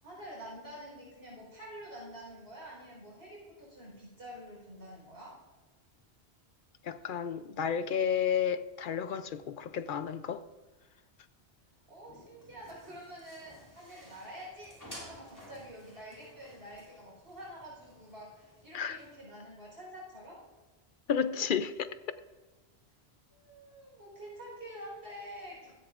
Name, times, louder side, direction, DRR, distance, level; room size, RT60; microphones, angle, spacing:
voice 1, 0.0-5.4 11.9-20.4 23.3-25.7, equal, 70° right, 4.4 m, -47 dB
voice 2, 6.8-10.5 18.7-19.0 21.1-22.0, left 7 dB, 60° left, 0.6 m, -32 dB
sound 1, 11.9-19.2, equal, 20° left, 3.5 m, -54 dB
16.0 x 14.0 x 2.5 m
omnidirectional pair, 1.1 m